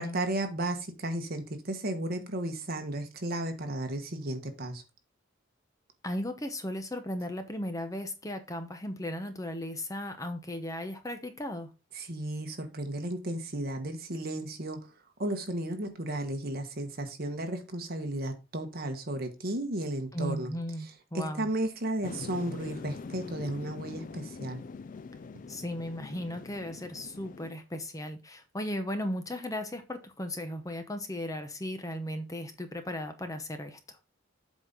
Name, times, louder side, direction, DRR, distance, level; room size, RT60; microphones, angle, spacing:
voice 1, 0.0-4.8 11.9-14.8 15.2-20.5 21.1-24.6, right 1 dB, 50° right, 1.4 m, -34 dB
voice 2, 6.0-11.7 20.1-21.5 25.5-34.0, left 1 dB, 15° left, 0.9 m, -36 dB
sound 1, 22.0-27.5, left 4 dB, 40° left, 0.4 m, -43 dB
7.9 x 4.2 x 5.2 m
head